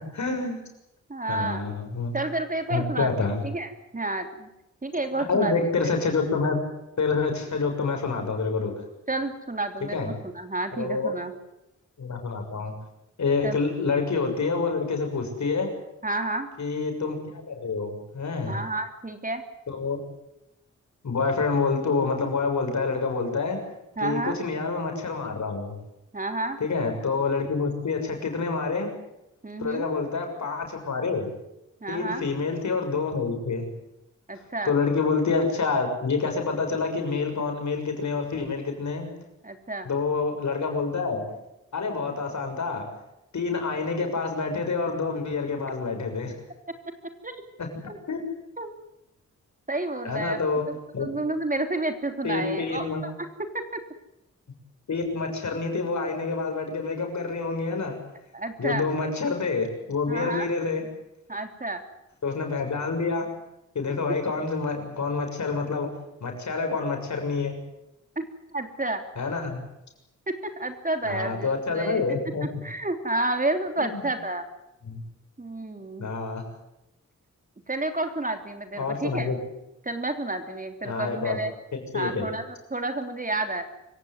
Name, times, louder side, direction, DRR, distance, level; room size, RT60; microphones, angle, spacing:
voice 1, 0.1-0.6 1.3-2.2 2.7-3.4 5.1-6.6 7.0-8.7 9.9-10.1 10.7-11.1 12.0-12.7 13.2-15.7 16.6-18.6 19.7-20.0 21.0-23.6 24.0-25.7 26.6-28.9 29.6-31.3 31.9-33.7 34.6-39.1 39.8-41.2 41.7-42.8 43.3-46.3 47.6-47.7 48.1-48.2 50.0-50.6 50.9-51.1 52.2-53.0 54.9-58.0 58.6-60.8 62.2-63.3 63.7-65.9 66.2-67.6 69.2-69.6 71.0-72.5 73.8-74.1 74.9-75.0 76.0-76.4 78.7-79.4 80.8-81.4 81.7-82.3, left 4 dB, 65° left, 4 dB, 6.8 m, -27 dB
voice 2, 1.1-1.7 2.1-4.5 4.8-5.5 9.1-11.3 13.4-13.6 16.0-16.5 18.5-19.4 24.0-24.4 26.1-26.6 29.4-29.9 31.8-32.2 34.3-34.7 39.4-39.9 47.2-47.3 47.9-48.0 48.6-48.7 49.7-50.4 50.7-53.1 53.4-53.8 58.3-58.9 60.1-60.5 61.3-61.8 63.9-64.0 68.1-68.2 68.5-69.0 70.3-72.0 72.4-74.4 75.4-76.1 77.7-79.3 79.8-81.5 81.9-83.6, right 2 dB, 25° right, 6 dB, 3.3 m, -30 dB
25.5 x 16.0 x 9.6 m, 0.89 s
cardioid pair, 60°, 31 cm